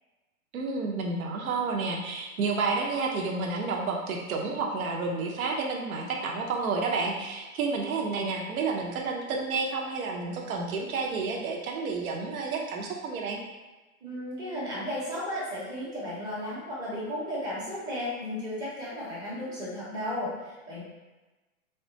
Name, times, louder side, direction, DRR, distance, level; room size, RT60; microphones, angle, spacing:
voice 1, 0.5-13.4, right 4 dB, 75° right, 0 dB, 0.7 m, -30 dB
voice 2, 14.0-20.8, left 1 dB, 10° right, -8 dB, 0.6 m, -34 dB
3.5 x 2.2 x 2.7 m, 1.2 s
hypercardioid pair, 140°, 43 cm